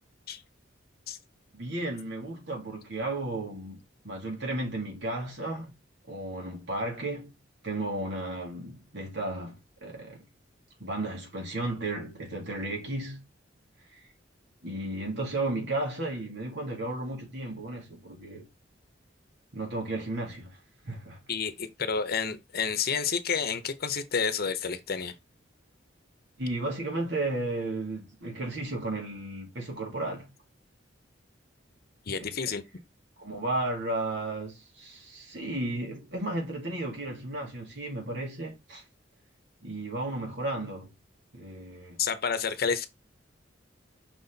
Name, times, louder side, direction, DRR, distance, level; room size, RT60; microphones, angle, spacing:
voice 1, 1.5-3.8 4.0-5.7 6.1-7.3 7.6-9.5 9.8-10.2 10.8-13.2 13.9-14.0 14.6-18.5 19.5-20.6 20.8-21.2 26.4-30.3 32.1-32.4 33.2-38.8 39.6-40.9 41.3-42.0, right 2 dB, 65° right, 2.8 m, -34 dB
voice 2, 21.3-25.1 32.1-32.6 42.0-42.9, left 6 dB, 55° left, 0.8 m, -30 dB
6.1 x 4.1 x 4.0 m
head